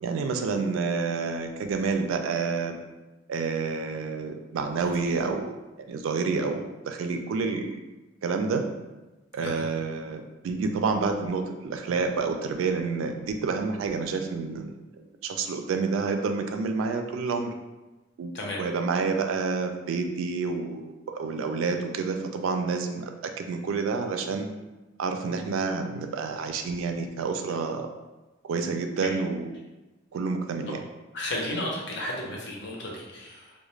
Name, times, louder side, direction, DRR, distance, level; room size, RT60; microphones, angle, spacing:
voice 1, 0.0-2.8 3.3-5.6 5.9-7.8 8.2-8.7 9.3-17.5 18.2-18.3 18.6-23.1 23.4-24.5 25.0-27.9 28.4-29.5 30.1-30.8, right 4 dB, 85° right, 5 dB, 0.3 m, -29 dB
voice 2, 31.1-33.5, left 1 dB, 65° left, -2 dB, 0.6 m, -33 dB
2.3 x 2.1 x 3.0 m, 1.1 s
head